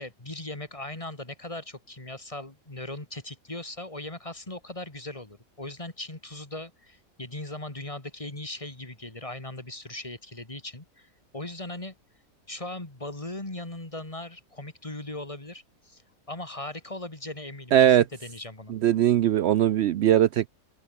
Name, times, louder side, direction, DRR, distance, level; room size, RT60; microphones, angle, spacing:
voice 1, 0.0-11.9 12.5-16.0 16.3-18.7, left 2 dB, 20° left, 2.6 m, -39 dB
voice 2, 17.7-18.0 18.7-20.5, right 11 dB, 85° right, 0.5 m, -20 dB
open air
omnidirectional pair, 1.7 m